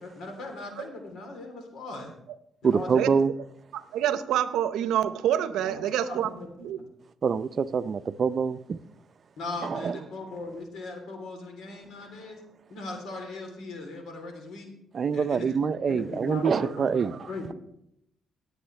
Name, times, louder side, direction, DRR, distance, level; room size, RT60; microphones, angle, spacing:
voice 1, 0.0-2.1 2.6-3.2 5.6-6.7 9.4-12.4 12.7-14.7 15.1-17.5, left 2 dB, 75° left, 3.2 m, -39 dB
voice 2, 2.6-3.3 7.2-8.8 9.6-10.0 14.9-17.5, right 6 dB, 45° right, 0.5 m, -26 dB
voice 3, 3.7-6.3 6.6-6.8, right 11 dB, 85° right, 0.7 m, -27 dB
18.5 x 7.8 x 3.3 m
cardioid pair, 90°, 0 cm